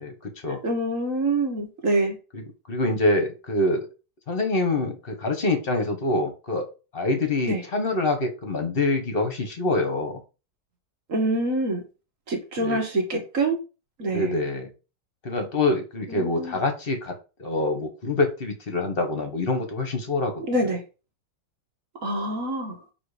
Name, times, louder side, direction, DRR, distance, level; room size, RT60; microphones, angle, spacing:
voice 1, 0.6-2.2 7.5-7.6 11.1-11.8 12.3-13.6 14.0-14.3 16.1-16.6 20.5-20.8 22.0-22.8, right 2 dB, 45° right, 3 dB, 1.8 m, -25 dB
voice 2, 2.7-3.9 4.3-6.7 6.9-10.2 12.6-12.8 14.1-14.7 15.2-17.1 17.4-20.4, left 2 dB, 35° left, 5 dB, 1.3 m, -25 dB
6.9 x 3.4 x 5.0 m, 0.32 s
omnidirectional pair, 2.0 m